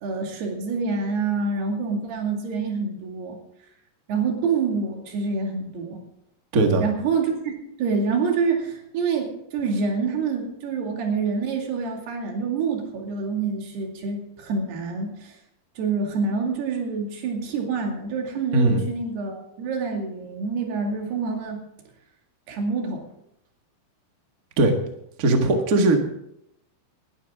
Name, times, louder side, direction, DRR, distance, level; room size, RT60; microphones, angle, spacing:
voice 1, 0.0-3.4 4.1-6.0 6.8-15.4 15.8-21.6 22.5-23.0, right 4 dB, 85° right, 1 dB, 4.4 m, -27 dB
voice 2, 6.5-6.8 18.5-18.8 24.6-24.7 25.2-26.0, right 2 dB, 45° right, 3 dB, 1.2 m, -19 dB
19.5 x 12.0 x 3.7 m, 0.78 s
omnidirectional pair, 4.5 m